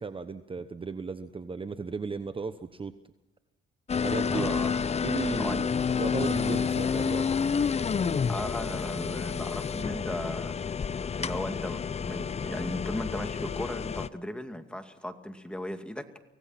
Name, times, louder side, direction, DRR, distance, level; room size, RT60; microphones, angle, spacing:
voice 1, 0.0-2.9 4.0-4.6 5.0-5.7 6.0-7.3, right 4 dB, 25° right, 11 dB, 1.0 m, -35 dB
sound 1, 3.9-14.1, left 6 dB, 30° left, 0.7 m, -29 dB
voice 2, 4.3-4.7 5.4-5.6 8.3-10.6 11.2-16.1, left 1 dB, 5° left, 6 dB, 2.4 m, -36 dB
25.5 x 17.5 x 5.9 m, 1.1 s
cardioid pair, 90°, 20 cm